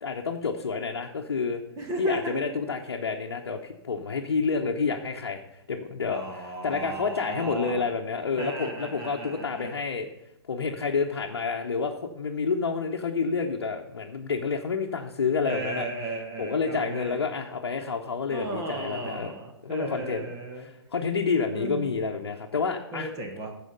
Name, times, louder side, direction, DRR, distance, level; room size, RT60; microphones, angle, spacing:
voice 1, 0.0-1.6 2.0-10.1 10.5-15.9 16.4-19.3 19.6-20.3 20.9-23.1, left 5 dB, 70° left, 0 dB, 0.9 m, -29 dB
voice 2, 1.8-2.6 6.1-7.8 8.4-9.7 15.4-17.2 18.3-20.7 21.5-21.9 22.9-23.5, right 2 dB, 25° right, 2 dB, 1.6 m, -35 dB
14.5 x 5.0 x 5.3 m, 0.85 s
figure-of-eight pair, 120°, 14 cm